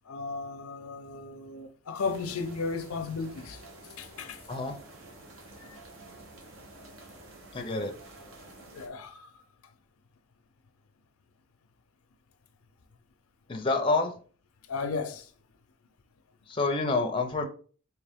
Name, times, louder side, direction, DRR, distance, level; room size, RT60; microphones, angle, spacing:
voice 1, 0.1-3.6 4.0-4.4 5.6-5.8 8.7-9.3 14.7-15.3, left 4 dB, 85° left, 0.5 m, -35 dB
sound 1, 2.0-8.9, right 2 dB, 65° right, 0.9 m, -50 dB
voice 2, 7.5-7.9 13.5-14.1 16.5-17.5, left 3 dB, 25° left, 0.5 m, -27 dB
3.7 x 3.0 x 3.4 m
head